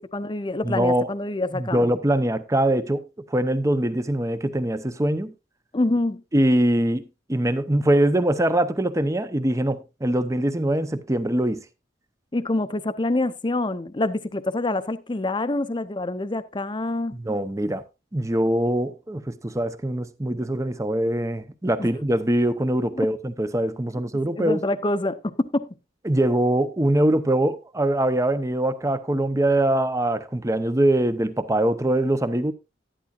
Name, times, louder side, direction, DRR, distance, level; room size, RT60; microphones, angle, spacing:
voice 1, 0.1-1.9 5.7-6.2 12.3-17.2 21.8-21.9 23.0-23.1 24.3-25.7, left 2 dB, 25° left, 0.6 m, -26 dB
voice 2, 0.6-1.1 1.5-5.3 6.3-7.0 7.3-11.6 17.1-17.8 18.1-24.6 26.0-32.5, right 1 dB, 15° right, 0.7 m, -23 dB
11.5 x 11.0 x 2.4 m
head